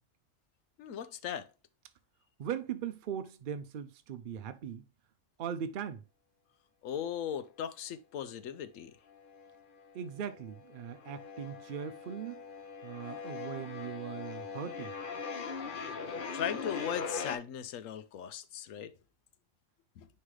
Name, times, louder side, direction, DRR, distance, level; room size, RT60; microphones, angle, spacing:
voice 1, 0.8-1.5 6.8-8.9 16.3-18.9 20.0-20.1, left 9 dB, 85° left, 1.0 m, -38 dB
voice 2, 2.4-4.8 5.4-6.0 9.9-12.5 12.8-14.9, right 8 dB, 60° right, 0.5 m, -39 dB
sound 1, 9.1-9.9 10.2-17.4, left 5 dB, 45° left, 0.9 m, -41 dB
9.6 x 3.3 x 3.2 m
omnidirectional pair, 1.3 m